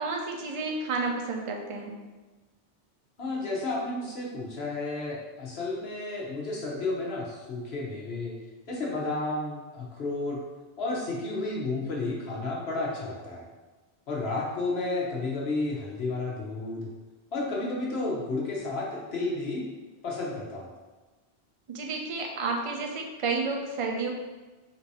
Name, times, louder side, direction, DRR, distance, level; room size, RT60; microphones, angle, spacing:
voice 1, 0.0-2.0 21.7-24.1, right 3 dB, 40° right, 1 dB, 0.5 m, -31 dB
voice 2, 3.2-8.4 8.7-10.4 10.8-13.4 14.1-16.9 17.3-19.7 20.0-20.7, left 2 dB, 80° left, -3 dB, 1.3 m, -32 dB
3.8 x 2.7 x 4.7 m, 1.3 s
omnidirectional pair, 1.0 m